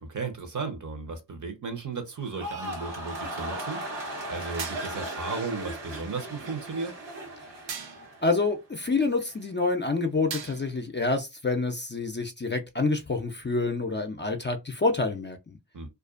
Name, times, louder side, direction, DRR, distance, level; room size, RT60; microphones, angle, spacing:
voice 1, 0.0-3.8 4.3-7.0 15.7-15.9, right 4 dB, 45° right, 0.9 m, -35 dB
sound 1, 2.2-8.5 8.8-9.3, right 1 dB, 75° right, 1.2 m, -37 dB
sound 2, 4.6-5.2 7.7-8.2 10.3-10.9, right 6 dB, 90° right, 0.7 m, -39 dB
voice 2, 8.2-15.6, left 3 dB, 25° left, 0.5 m, -27 dB
2.5 x 2.3 x 2.4 m
cardioid pair, 50°, 43 cm